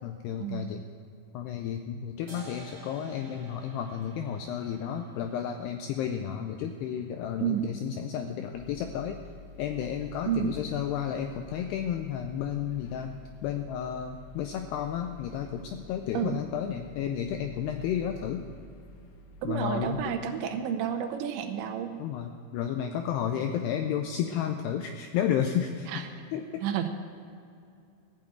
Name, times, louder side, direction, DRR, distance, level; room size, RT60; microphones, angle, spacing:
voice 1, 0.0-0.8 1.3-9.2 9.6-13.1 13.4-18.5 19.4-20.2 22.0-26.0 26.3-26.6, left 9 dB, 90° left, 6 dB, 2.3 m, -32 dB
sound 1, 2.3-9.2, right 2 dB, 15° right, 3.4 m, -53 dB
sound 2, 8.5-19.9, left 5 dB, 70° left, 3.1 m, -49 dB
voice 2, 19.4-21.9 25.9-26.0 26.6-26.9, right 9 dB, 80° right, 7 dB, 3.0 m, -30 dB
15.5 x 6.6 x 9.0 m, 2.5 s
omnidirectional pair, 5.4 m